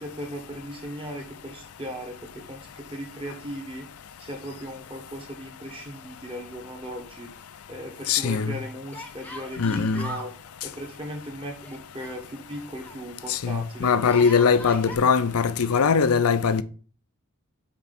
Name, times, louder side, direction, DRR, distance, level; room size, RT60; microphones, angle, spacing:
voice 1, 0.0-3.9 4.2-7.3 7.7-10.3 10.6-15.0, equal, 25° right, 1.4 m, -38 dB
Yell, 5.7-6.6 6.8-6.9 8.9-10.3 11.6-13.0 14.0-15.0, left 1 dB, 5° left, 0.9 m, -41 dB
voice 2, 8.1-8.6 9.6-10.1 13.3-16.6, left 5 dB, 75° left, 0.5 m, -21 dB
5.7 x 4.5 x 4.2 m
head